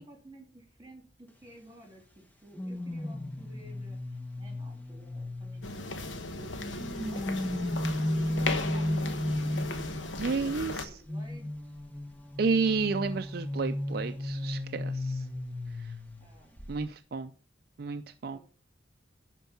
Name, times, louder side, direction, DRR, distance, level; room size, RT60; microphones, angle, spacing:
voice 1, 0.0-7.4 7.7-11.8 14.4-14.5 15.2-15.4 16.2-16.9 18.3-18.4, right 1 dB, 20° right, 2 dB, 3.1 m, -53 dB
sound 1, 2.6-6.2 6.8-10.0 11.1-16.3 16.6-16.8, left 1 dB, 10° left, 1.0 m, -34 dB
sound 2, 5.6-10.8, left 2 dB, 85° left, 1.1 m, -36 dB
voice 2, 10.2-11.0 12.4-15.3 15.8-15.9 16.7-17.3 17.8-18.4, right 4 dB, 55° right, 8 dB, 0.4 m, -31 dB
11.0 x 4.6 x 5.7 m, 0.37 s
head